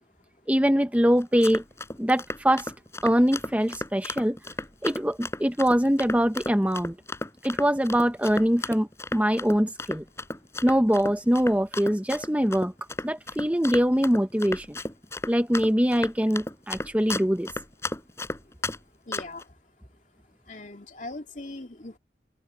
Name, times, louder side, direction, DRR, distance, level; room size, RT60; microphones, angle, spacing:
voice 1, 0.5-1.6 2.0-2.7 3.0-4.4 4.8-7.0 7.4-10.0 10.6-12.7 13.0-14.8 15.3-17.5, equal, 10° right, 0.9 m, -23 dB
Run, 1.2-18.8 19.1-19.4, left 2 dB, 15° left, 5.8 m, -34 dB
voice 2, 18.2-18.8 19.0-19.6 20.3-22.0, left 2 dB, 45° left, 2.8 m, -41 dB
head